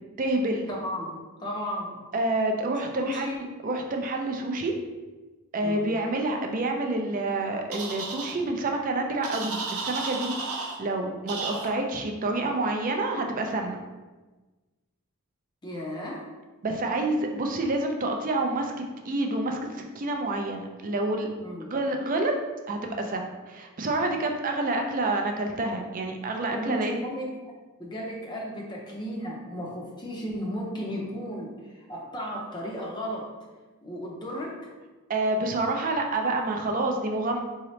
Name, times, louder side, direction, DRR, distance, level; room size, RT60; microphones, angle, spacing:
voice 1, 0.2-0.7 2.1-4.7 5.5-13.8 16.6-21.3 21.6-22.3 22.7-27.0 35.1-37.4, right 2 dB, 40° right, 3 dB, 0.4 m, -28 dB
voice 2, 0.7-2.0 2.9-3.5 5.6-6.0 15.6-16.2 21.4-21.7 26.5-27.3 27.8-33.3 33.8-34.6, equal, 20° left, -2 dB, 0.5 m, -35 dB
sound 1, 7.7-8.3 9.2-10.8 11.3-11.7, right 4 dB, 75° right, 0.7 m, -33 dB
3.9 x 2.8 x 3.1 m, 1.2 s
head